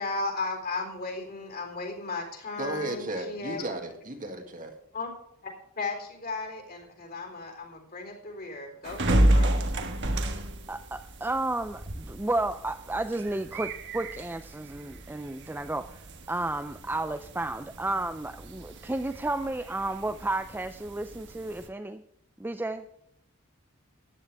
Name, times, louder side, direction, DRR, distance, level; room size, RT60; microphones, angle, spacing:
voice 1, 0.0-3.6 4.9-5.1 5.4-9.6, left 3 dB, 45° left, 3.9 m, -35 dB
voice 2, 2.6-4.7, right 1 dB, 40° right, 2.0 m, -34 dB
sound 1, 8.8-21.7, right 1 dB, 55° right, 1.4 m, -31 dB
voice 3, 10.7-22.0 22.4-22.9, right 2 dB, 10° right, 0.4 m, -32 dB
14.5 x 10.0 x 3.4 m
head